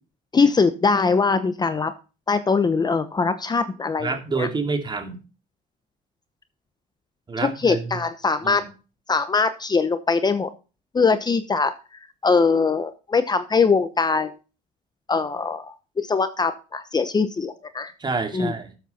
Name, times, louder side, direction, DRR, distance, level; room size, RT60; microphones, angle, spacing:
voice 1, 0.3-1.9 2.3-4.5 7.4-8.6 9.1-10.5 10.9-11.7 12.2-14.3 15.1-17.9 18.3-18.5, left 4 dB, 25° left, 11 dB, 0.9 m, -22 dB
voice 2, 4.0-5.2 7.3-7.9 8.4-8.7 18.0-18.8, right 4 dB, 25° right, 6 dB, 2.5 m, -28 dB
12.5 x 7.7 x 4.2 m, 0.34 s
cardioid pair, 110°, 17 cm